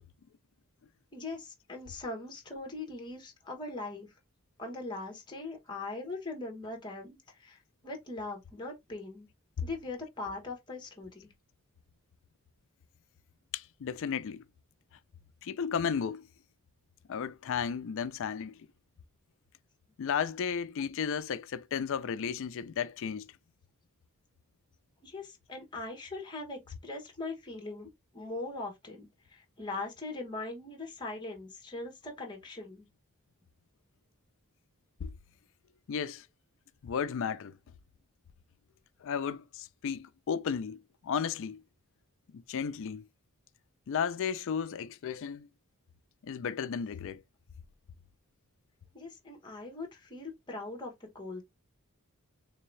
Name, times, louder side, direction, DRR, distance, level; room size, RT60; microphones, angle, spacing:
voice 1, 1.1-4.1 4.6-9.3 9.6-11.3 25.0-32.8 48.9-51.4, left 2 dB, 20° left, 1.1 m, -41 dB
voice 2, 13.5-14.4 15.4-16.3 17.1-18.6 20.0-23.3 35.0-35.2 35.9-36.2 36.8-37.6 39.0-41.6 42.3-43.1 43.9-45.5 46.2-47.2, left 7 dB, 60° left, 0.4 m, -34 dB
3.4 x 2.8 x 3.1 m
head